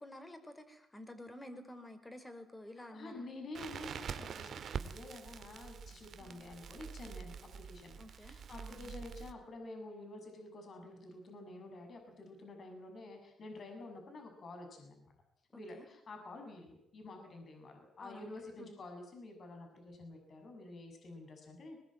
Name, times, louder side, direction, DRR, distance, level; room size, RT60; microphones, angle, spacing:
voice 1, 0.0-3.2 6.2-6.4 8.0-8.9 15.5-15.8 18.0-18.3 18.6-18.7, left 1 dB, 15° left, 8 dB, 4.8 m, -51 dB
voice 2, 2.9-15.1 15.5-21.8, left 2 dB, 50° left, 3 dB, 6.8 m, -49 dB
Crackle, 3.5-9.3, right 7 dB, 60° right, 2.0 m, -45 dB
21.0 x 21.0 x 8.8 m, 0.74 s
cardioid pair, 90°, 0 cm